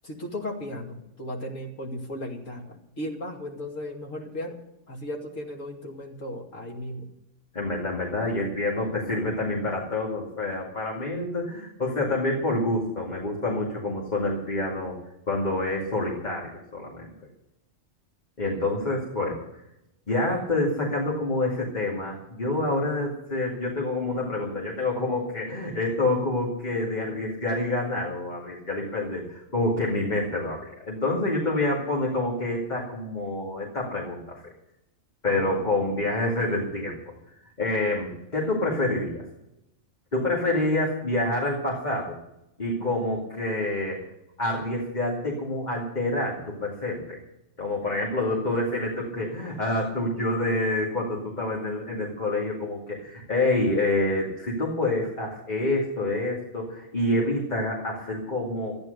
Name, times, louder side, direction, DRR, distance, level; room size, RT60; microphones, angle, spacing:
voice 1, 0.0-4.6 4.9-7.1 18.8-19.1 35.3-35.6, left 1 dB, 75° left, -1 dB, 2.9 m, -36 dB
voice 2, 7.5-15.0 15.3-17.1 18.4-19.5 20.1-34.5 35.2-37.0 37.6-39.2 40.1-42.1 42.6-44.0 44.4-47.2 47.6-58.7, left 2 dB, 35° left, -3 dB, 2.6 m, -27 dB
14.0 x 10.5 x 6.7 m, 0.86 s
omnidirectional pair, 1.4 m